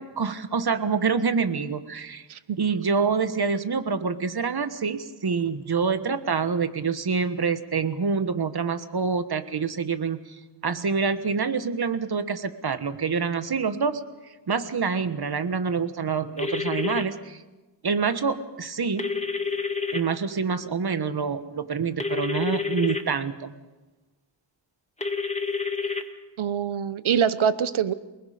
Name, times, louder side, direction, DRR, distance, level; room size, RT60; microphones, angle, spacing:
voice 1, 0.0-2.2 2.6-10.2 10.6-14.0 14.5-17.4 17.8-19.1 19.9-23.5, right 5 dB, 50° right, 11 dB, 1.4 m, -26 dB
sound 1, 16.4-17.0 19.0-20.0 22.0-23.0 25.0-26.0, left 4 dB, 15° left, 1.7 m, -28 dB
voice 2, 26.4-27.9, right 8 dB, 85° right, 14 dB, 1.0 m, -24 dB
28.5 x 20.0 x 5.1 m, 1.1 s
wide cardioid pair, 70°, 47 cm